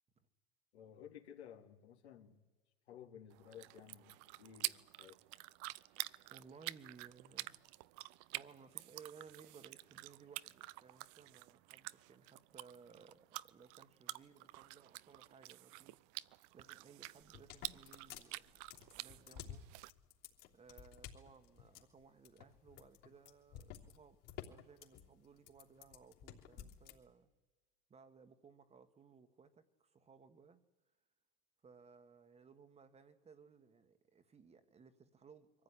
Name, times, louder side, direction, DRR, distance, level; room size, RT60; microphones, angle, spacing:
voice 1, 0.7-2.4 2.9-5.2, left 9 dB, 80° left, 2.8 m, -56 dB
sound 1, 3.3-19.9, right 20 dB, 50° right, 0.6 m, -49 dB
voice 2, 6.3-7.6 7.9-8.0 8.3-16.0 16.5-18.4 19.0-19.6 20.5-27.3 27.9-30.6 31.6-35.6, right 5 dB, 20° right, 1.4 m, -61 dB
sound 2, 17.2-27.0, left 10 dB, 50° left, 3.3 m, -53 dB
23.0 x 15.0 x 9.9 m
supercardioid pair, 120°, 32 cm